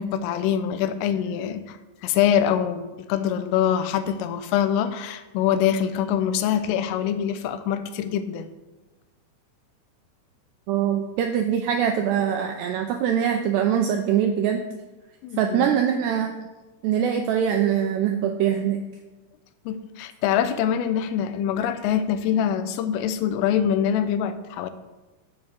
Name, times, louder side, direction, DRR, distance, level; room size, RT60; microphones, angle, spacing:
voice 1, 0.0-1.8 2.0-8.5 15.2-15.7 19.7-24.7, left 9 dB, 85° left, 11 dB, 3.4 m, -24 dB
voice 2, 10.7-14.6 15.4-16.3 16.8-18.8, right 9 dB, 90° right, 5 dB, 2.4 m, -23 dB
11.0 x 7.3 x 8.0 m, 1.1 s
omnidirectional pair, 5.8 m